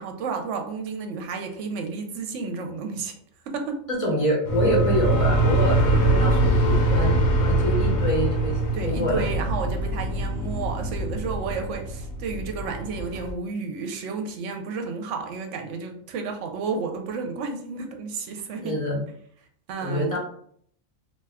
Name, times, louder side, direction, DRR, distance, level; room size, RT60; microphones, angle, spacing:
voice 1, 0.0-3.1 3.4-3.9 8.7-18.7 19.7-20.2, right 4 dB, 70° right, 4 dB, 0.8 m, -32 dB
voice 2, 3.9-9.3 18.6-19.0 19.8-20.2, equal, 35° left, -3 dB, 0.6 m, -26 dB
sound 1, 4.4-13.3, right 2 dB, 65° left, 0.8 m, -23 dB
2.5 x 2.3 x 3.4 m, 0.65 s
omnidirectional pair, 1.4 m